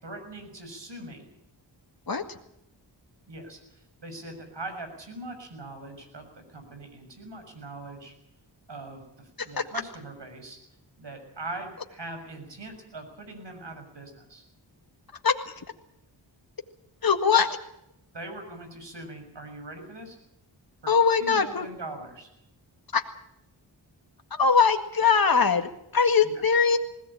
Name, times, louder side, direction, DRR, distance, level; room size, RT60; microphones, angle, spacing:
voice 1, 0.0-1.3 3.3-8.1 8.7-10.6 11.0-14.4 18.1-20.2 20.8-20.9 21.2-22.3 26.2-26.3, right 2 dB, 65° right, 6 dB, 6.7 m, -41 dB
voice 2, 17.0-17.5 20.9-21.7 22.9-23.0 24.4-26.8, left 5 dB, 50° left, 5 dB, 1.9 m, -21 dB
20.5 x 17.0 x 8.8 m, 0.80 s
cardioid pair, 50°, 45 cm